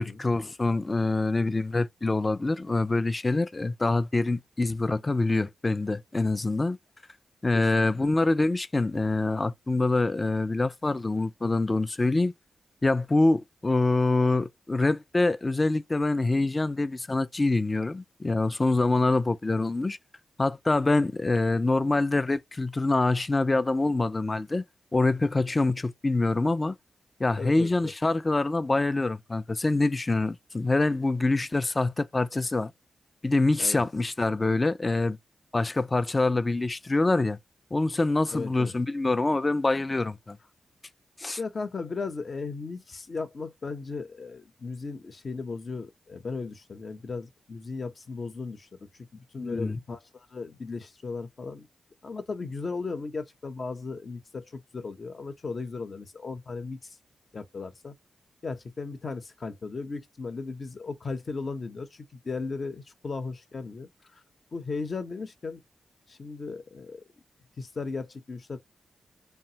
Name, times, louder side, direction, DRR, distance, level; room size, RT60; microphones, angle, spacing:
voice 1, 0.0-6.8 7.4-12.3 12.8-20.0 20.4-24.6 24.9-26.8 27.2-32.7 33.2-35.2 35.5-37.4 37.7-40.4 41.2-41.4 49.4-49.8, left 2 dB, 25° left, 0.3 m, -25 dB
voice 2, 7.5-7.9 27.4-27.9 33.6-33.8 38.3-38.7 41.4-48.7 49.0-51.7 52.0-57.0 57.3-57.9 58.4-64.2 64.5-65.6 66.1-67.0 67.6-68.6, left 4 dB, 50° left, 0.7 m, -36 dB
3.2 x 2.2 x 2.7 m
cardioid pair, 80°, 0 cm